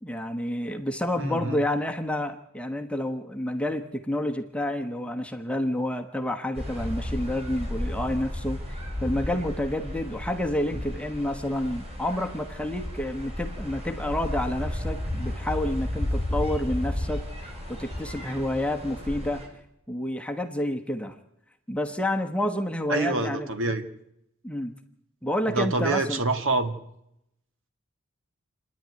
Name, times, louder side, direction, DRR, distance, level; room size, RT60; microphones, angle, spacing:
voice 1, 0.0-19.4 19.9-21.2 21.7-23.5 24.4-24.8 25.2-26.2, left 1 dB, 5° left, 3 dB, 1.1 m, -29 dB
voice 2, 1.1-1.6 10.7-10.8 22.9-23.8 25.5-26.7, right 3 dB, 65° right, 7 dB, 2.0 m, -26 dB
sound 1, 6.6-19.5, left 1 dB, 30° right, 5.9 m, -33 dB
28.5 x 10.5 x 9.6 m, 0.80 s
head